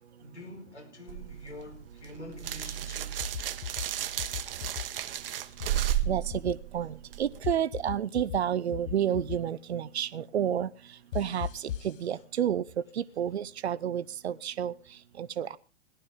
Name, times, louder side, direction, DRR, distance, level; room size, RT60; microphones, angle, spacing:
voice 1, 0.2-3.3, left 1 dB, 85° left, 4.8 m, -46 dB
sound 1, 1.1-7.4, right 12 dB, 55° right, 1.1 m, -33 dB
sound 2, 3.2-3.9 4.2-4.8 5.6-6.5 7.4-8.4 8.7-9.4 11.1-11.9, left 10 dB, 55° left, 0.6 m, -36 dB
voice 2, 6.1-12.6 12.9-15.6, right 9 dB, 75° right, 0.7 m, -31 dB
18.5 x 11.5 x 3.7 m
figure-of-eight pair, 115°, 33 cm